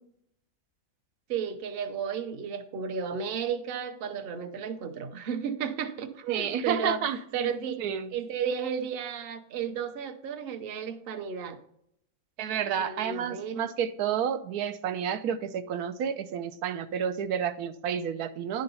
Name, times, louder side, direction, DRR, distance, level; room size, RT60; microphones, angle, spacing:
voice 1, 1.3-7.8 8.1-11.6 12.8-13.7, right 7 dB, 50° right, 7 dB, 0.8 m, -33 dB
voice 2, 6.3-7.2 7.8-8.1 12.4-18.6, right 8 dB, 90° right, 9 dB, 1.1 m, -30 dB
10.5 x 3.9 x 5.3 m, 0.72 s
omnidirectional pair, 1.6 m